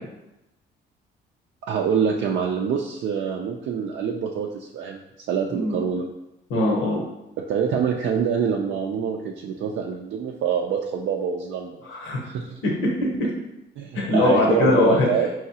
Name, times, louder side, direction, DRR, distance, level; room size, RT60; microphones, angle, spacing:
voice 1, 1.7-5.0 5.3-6.1 7.5-11.8 12.2-12.6 13.8-15.3, right 7 dB, 80° right, -1 dB, 0.5 m, -25 dB
voice 2, 6.5-7.0 11.8-12.2 12.6-12.7 13.9-15.1, left 2 dB, 85° left, -3 dB, 1.0 m, -21 dB
4.8 x 3.1 x 2.8 m, 0.91 s
cardioid pair, 90°, 20 cm